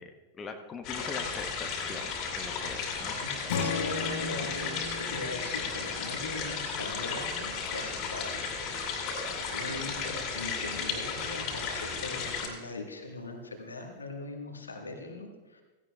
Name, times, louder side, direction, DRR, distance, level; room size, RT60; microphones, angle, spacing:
voice 1, 0.0-2.1 2.4-3.1, left 5 dB, 20° left, 5 dB, 0.9 m, -42 dB
sound 1, 0.8-12.5, left 5 dB, 40° left, 2.5 m, -34 dB
voice 2, 3.2-8.4 9.5-15.6, left 2 dB, 75° left, 3 dB, 1.5 m, -40 dB
Strum, 3.5-7.8, left 5 dB, 60° left, 1.2 m, -38 dB
16.0 x 16.0 x 2.4 m, 1.3 s
figure-of-eight pair, 90°, 0 cm